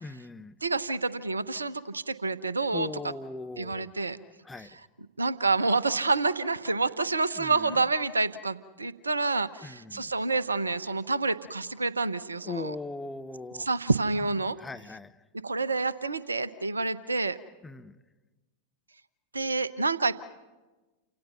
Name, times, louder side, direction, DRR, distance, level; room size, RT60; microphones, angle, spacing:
voice 1, 0.0-0.6 2.7-3.9 4.4-4.8 7.4-7.8 9.6-10.1 12.4-13.7 14.6-15.1 17.6-18.0, left 3 dB, 10° left, 9 dB, 0.9 m, -39 dB
voice 2, 0.6-2.9 3.6-4.2 5.2-12.7 13.7-14.6 15.4-17.4 19.3-20.1, right 3 dB, 80° right, 17 dB, 0.9 m, -28 dB
29.5 x 26.0 x 5.8 m, 1.2 s
figure-of-eight pair, 90°, 0 cm